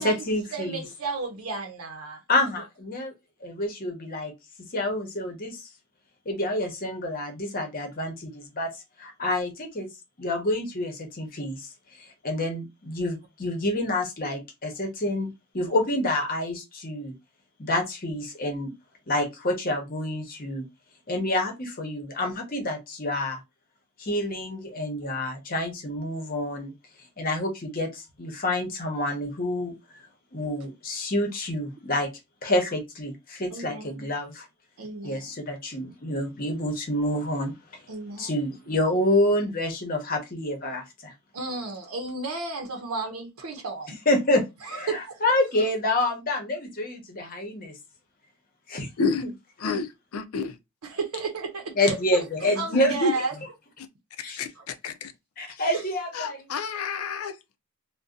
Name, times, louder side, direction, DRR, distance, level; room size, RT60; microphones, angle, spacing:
voice 1, 0.0-0.8 2.3-3.1 3.4-4.3 4.7-5.6 6.3-8.7 9.0-9.9 10.2-11.7 12.0-17.1 17.6-18.7 19.1-20.6 21.1-23.4 24.0-26.7 27.2-29.7 30.3-32.1 32.4-34.5 35.0-37.5 38.2-41.1 44.1-47.7 48.7-48.9 49.2-49.3 49.6-49.7 51.8-52.9 54.2-54.4 55.4-56.4, left 1 dB, 40° left, 0.9 m, -28 dB
voice 2, 0.5-2.2 33.5-34.1 34.8-35.4 37.9-38.4 41.3-44.0 44.6-45.2 50.8-53.3, right 3 dB, 75° right, 0.7 m, -33 dB
voice 3, 49.6-50.6 52.7-53.1 54.4-54.5 54.8-55.1 56.1-57.6, left 4 dB, 75° left, 0.5 m, -29 dB
2.6 x 2.2 x 3.5 m
head